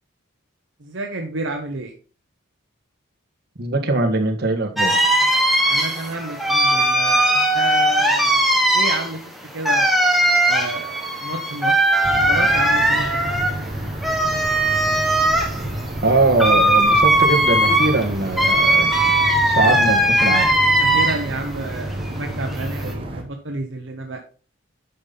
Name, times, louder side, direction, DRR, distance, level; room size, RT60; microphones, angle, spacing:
voice 1, 0.8-1.9 5.7-9.2 9.5-9.9 10.4-11.8 12.1-13.5 19.7-19.8 20.8-24.2, right 2 dB, 65° right, 1.0 m, -30 dB
voice 2, 3.6-5.0 16.0-18.9 19.5-20.5, right 2 dB, 50° right, 1.7 m, -21 dB
sound 1, 4.8-21.4 21.8-22.9, right 1 dB, ahead, 1.2 m, -19 dB
sound 2, 12.0-23.2, right 1 dB, 25° right, 1.6 m, -30 dB
10.5 x 5.4 x 4.1 m
head